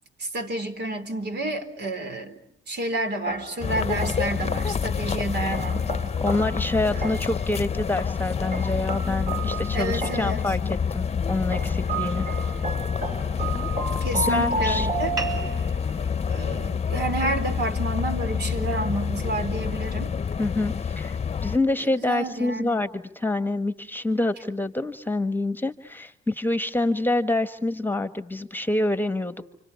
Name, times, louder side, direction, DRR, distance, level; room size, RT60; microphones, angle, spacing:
voice 1, 0.2-2.4 2.7-5.9 6.9-7.2 9.7-10.4 14.0-15.1 16.3-20.1 21.8-22.8, right 2 dB, 55° right, 7 dB, 4.1 m, -30 dB
sound 1, 3.3-4.5 5.5-7.5 8.5-10.5 11.5-15.8, right 2 dB, 40° right, 3.3 m, -32 dB
sound 2, 3.6-21.6, left 6 dB, 30° left, 1.0 m, -28 dB
voice 2, 6.2-12.3 14.1-14.9 20.4-29.5, left 2 dB, 10° left, 11 dB, 1.5 m, -27 dB
sound 3, 15.2-20.2, right 2 dB, 20° right, 7.1 m, -41 dB
30.0 x 26.5 x 7.1 m, 0.69 s
cardioid pair, 90°, 20 cm